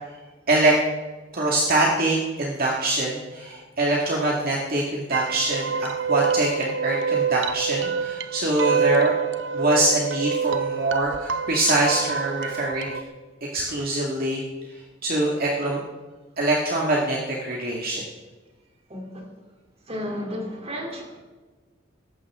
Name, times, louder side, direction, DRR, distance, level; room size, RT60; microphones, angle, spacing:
voice 1, 1.3-9.1 9.5-13.0 13.5-14.4 15.0-15.8 16.4-18.0, right 2 dB, 50° right, -2 dB, 1.9 m, -24 dB
sound 1, 5.1-13.0, right 6 dB, 70° right, 0.8 m, -26 dB
voice 2, 18.9-19.2 19.9-21.2, equal, 35° right, 1 dB, 3.1 m, -33 dB
18.0 x 15.0 x 3.7 m, 1.3 s
head